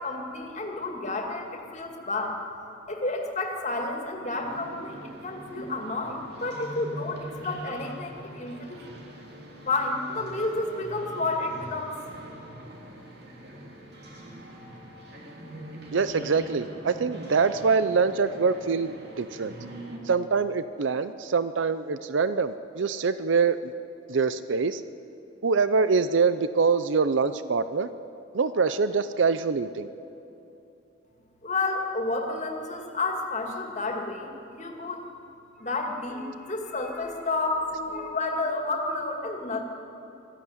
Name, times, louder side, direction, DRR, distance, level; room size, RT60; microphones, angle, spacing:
voice 1, 0.0-2.4 2.9-8.8 9.7-12.0 31.4-35.0 35.6-39.6, left 2 dB, 35° left, 2 dB, 2.3 m, -31 dB
sound 1, 4.3-20.0, right 1 dB, 55° right, 2.8 m, -43 dB
voice 2, 15.9-19.5 20.0-23.7 24.1-24.8 25.4-27.9 28.3-29.9, right 5 dB, 75° right, 13 dB, 0.6 m, -24 dB
20.5 x 14.5 x 9.6 m, 2.9 s
head